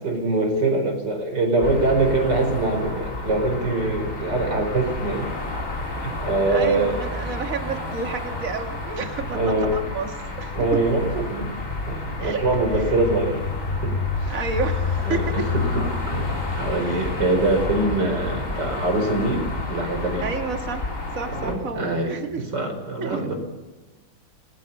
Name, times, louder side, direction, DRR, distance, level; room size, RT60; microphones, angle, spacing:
voice 1, 0.0-5.3 6.0-7.0 9.3-9.7 10.6-11.5 11.9-13.5 13.8-13.9 14.2-14.3 15.1-20.3 21.3-23.3, right 2 dB, 60° right, 5 dB, 5.2 m, -24 dB
sound 1, 1.6-21.5, left 3 dB, 40° left, 4.2 m, -30 dB
voice 2, 6.5-9.4 9.7-10.6 12.2-12.4 14.3-15.4 16.8-17.1 20.2-20.9 21.1-22.4 23.0-23.2, right 5 dB, 45° right, 5 dB, 2.3 m, -30 dB
29.5 x 18.5 x 5.6 m, 1.2 s
omnidirectional pair, 2.1 m